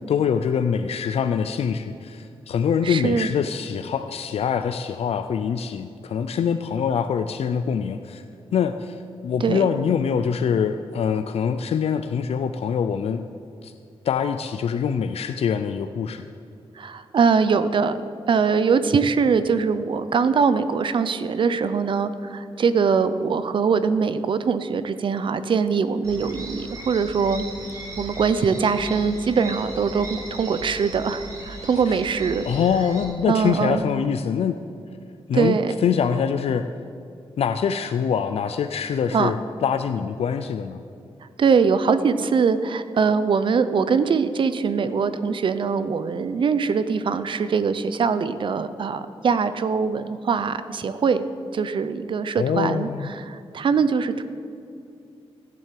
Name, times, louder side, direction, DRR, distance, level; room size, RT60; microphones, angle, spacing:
voice 1, 0.1-8.2 8.5-13.2 13.6-13.7 14.0-16.2 32.4-34.6 35.3-36.6 37.4-40.8 52.4-53.1, left 7 dB, 80° left, 9 dB, 0.5 m, -24 dB
voice 2, 2.8-3.3 9.4-9.7 16.8-18.0 18.3-27.4 28.0-32.4 33.3-33.8 35.3-35.7 39.1-39.3 41.4-51.2 51.5-54.2, right 5 dB, 55° right, 12 dB, 0.6 m, -22 dB
sound 1, 26.0-33.0, right 2 dB, 35° right, 3.0 m, -38 dB
15.5 x 7.7 x 7.5 m, 2.5 s
wide cardioid pair, 170°, 10 cm